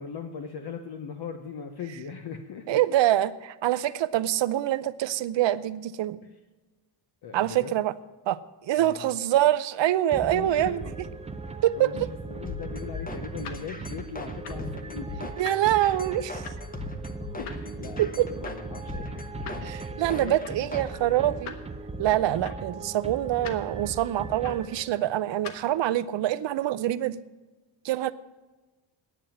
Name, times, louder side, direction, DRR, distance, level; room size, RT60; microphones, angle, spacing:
voice 1, 0.0-2.8 6.2-6.4 7.2-7.7 8.8-9.1 10.3-10.9 11.8-15.3 17.4-21.4, left 6 dB, 50° left, 6 dB, 1.1 m, -40 dB
voice 2, 2.7-6.2 7.3-7.9 8.3-10.8 11.6-11.9 15.4-16.4 18.0-18.3 19.6-21.5 22.0-27.2 27.8-28.1, right 13 dB, 60° right, 15 dB, 0.7 m, -25 dB
sound 1, 10.1-25.2, right 3 dB, 15° right, 0.5 m, -38 dB
sound 2, 12.4-20.9, left 3 dB, 15° left, 1.1 m, -40 dB
sound 3, 12.9-25.8, left 7 dB, 80° left, 1.4 m, -47 dB
10.0 x 9.0 x 7.7 m, 1.2 s
cardioid pair, 125°, 48 cm